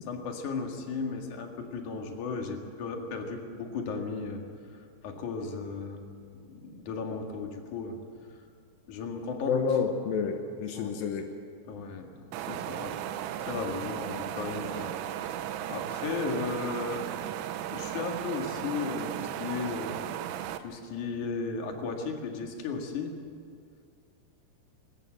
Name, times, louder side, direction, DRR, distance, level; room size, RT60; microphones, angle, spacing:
voice 1, 0.1-4.4 4.7-6.0 6.4-8.0 8.9-9.8 10.7-11.0 11.6-14.9 15.2-17.0 17.7-20.0 20.6-23.2, left 4 dB, 50° left, 3 dB, 2.5 m, -35 dB
voice 2, 9.5-11.3, left 6 dB, 80° left, 4 dB, 2.1 m, -29 dB
sound 1, 12.3-20.6, right 11 dB, 90° right, 3.6 m, -36 dB
21.5 x 19.0 x 7.5 m, 2.3 s
omnidirectional pair, 5.9 m